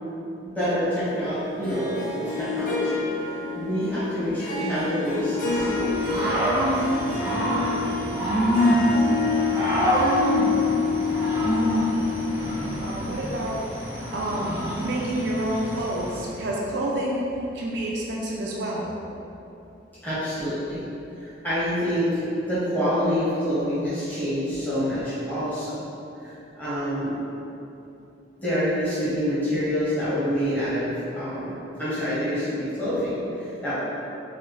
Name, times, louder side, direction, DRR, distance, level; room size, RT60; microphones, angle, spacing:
voice 1, 0.5-3.1 3.5-5.9 20.0-20.8 21.1-25.7 26.2-27.2 28.4-33.7, equal, 10° left, -13 dB, 0.9 m, -27 dB
Harp, 1.6-12.7, left 4 dB, 45° left, 0.7 m, -28 dB
voice 2, 3.6-4.0 7.0-7.5 12.8-13.6 14.1-14.5 14.8-17.2 17.5-18.9, right 1 dB, 70° right, -3 dB, 0.4 m, -29 dB
Growling / Cricket, 5.3-16.3, equal, 10° right, 0.6 m, -25 dB
4.0 x 2.7 x 3.1 m, 2.8 s
head